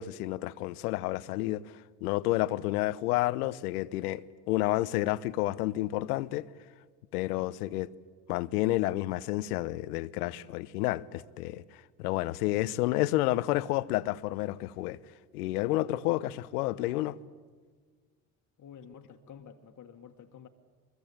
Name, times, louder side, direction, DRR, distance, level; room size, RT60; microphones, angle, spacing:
voice 1, 0.0-6.5 7.1-7.9 8.3-15.0 15.3-17.1, left 17 dB, 75° left, 0.9 m, -30 dB
voice 2, 16.7-17.1 18.6-20.5, left 7 dB, 40° left, 1.8 m, -50 dB
23.0 x 22.5 x 8.7 m
hypercardioid pair, 80°, 46 cm